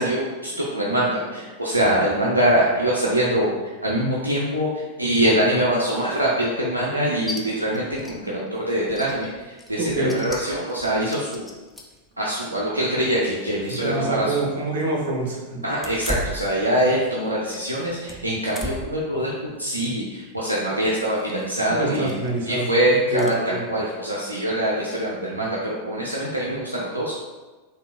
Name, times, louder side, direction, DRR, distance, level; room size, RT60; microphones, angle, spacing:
voice 1, 0.0-3.5 3.8-9.3 9.7-11.5 12.2-14.3 15.6-22.1 22.5-27.1, right 1 dB, 85° right, -5 dB, 0.5 m, -23 dB
sound 1, 7.3-7.4 7.7-8.2 8.5-8.6 8.9-12.0 12.6-13.9 14.2-14.3 15.7-17.2 17.5-19.0 19.5-19.8 21.2-21.5 22.0-22.4 23.2-23.4, left 1 dB, 10° left, 0.5 m, -36 dB
voice 2, 9.8-10.2 13.7-15.7 21.7-23.6, right 2 dB, 60° right, -1 dB, 0.9 m, -26 dB
3.7 x 2.7 x 3.1 m, 1.2 s
figure-of-eight pair, 90°, 0 cm